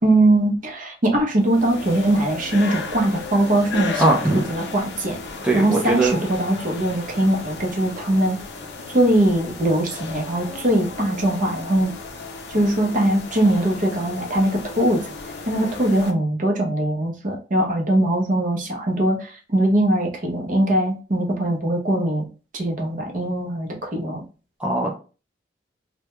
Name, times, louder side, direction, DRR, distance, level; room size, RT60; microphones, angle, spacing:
voice 1, 0.0-4.1 4.5-5.2 5.5-8.4 8.9-11.9 12.5-15.0 15.5-22.2 22.5-24.2, right 1 dB, 45° right, 0 dB, 0.7 m, -21 dB
sound 1, 1.4-16.1, left 3 dB, 60° left, 0.4 m, -35 dB
voice 2, 4.0-4.5 5.4-6.2 24.6-24.9, right 2 dB, 5° right, -3 dB, 0.4 m, -20 dB
2.2 x 2.1 x 2.9 m, 0.35 s
head